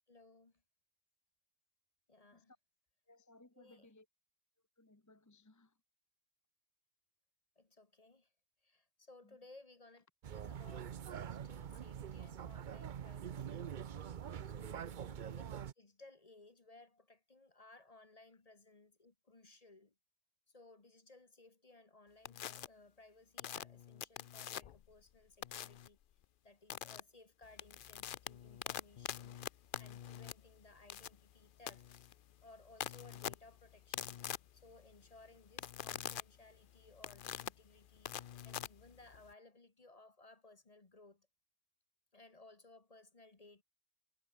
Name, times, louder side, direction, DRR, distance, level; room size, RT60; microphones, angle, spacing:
voice 1, 0.1-0.6 2.1-2.5 3.6-3.9 7.6-8.3 8.6-10.1 10.3-13.6 14.4-15.4 15.8-19.9 20.5-26.0 26.4-29.4 29.8-31.9 32.4-34.3 34.5-38.1 38.4-41.3 42.1-43.6, left 2 dB, 30° left, 1.4 m, -61 dB
voice 2, 3.1-4.1 4.8-5.8 9.2-9.4 14.6-14.9, left 2 dB, 15° left, 1.1 m, -63 dB
sound 1, 10.2-15.7, right 8 dB, 50° right, 0.7 m, -45 dB
sound 2, 22.3-22.7 23.4-24.9 25.4-25.9 26.7-27.0 27.4-39.3, left 10 dB, 55° left, 0.7 m, -45 dB
omnidirectional pair, 1.2 m